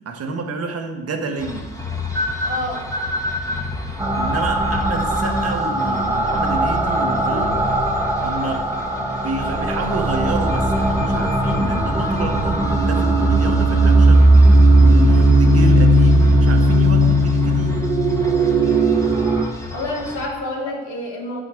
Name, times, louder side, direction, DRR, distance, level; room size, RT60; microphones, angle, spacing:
voice 1, 0.0-1.8 4.2-7.7 8.2-8.7 9.0-14.3 14.8-17.8, right 3 dB, 55° right, 5 dB, 1.3 m, -29 dB
sound 1, 1.4-20.3, left 2 dB, 10° left, 1.7 m, -32 dB
voice 2, 2.4-2.9 19.7-21.4, left 1 dB, 75° left, -3 dB, 2.9 m, -28 dB
sound 2, 4.0-19.4, right 1 dB, 10° right, 1.4 m, -17 dB
7.6 x 6.4 x 6.2 m, 1.2 s
supercardioid pair, 70°, 29 cm